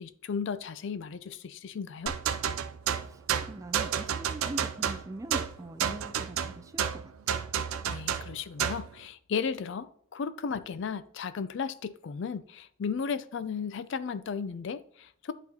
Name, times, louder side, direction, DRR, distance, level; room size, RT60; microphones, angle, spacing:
voice 1, 0.0-2.1 7.9-15.3, left 6 dB, 60° left, 14 dB, 0.4 m, -35 dB
sound 1, 2.1-8.9, right 8 dB, 85° right, 0.5 m, -31 dB
voice 2, 3.0-7.5, right 2 dB, 15° right, 9 dB, 0.3 m, -42 dB
10.5 x 4.0 x 2.9 m, 0.64 s
head